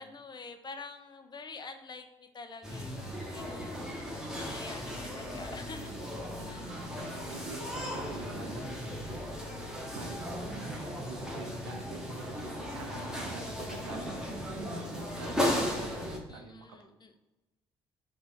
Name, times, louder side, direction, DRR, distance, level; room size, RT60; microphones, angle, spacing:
voice 1, 0.0-4.0 4.3-5.9 6.4-6.8 16.3-17.2, left 4 dB, 30° left, 7 dB, 0.5 m, -47 dB
sound 1, 2.6-16.2, equal, 5° right, 0.9 m, -36 dB
voice 2, 6.4-17.2, right 4 dB, 90° right, 5 dB, 0.4 m, -47 dB
3.4 x 2.2 x 4.2 m, 1.0 s
hypercardioid pair, 45°, 14 cm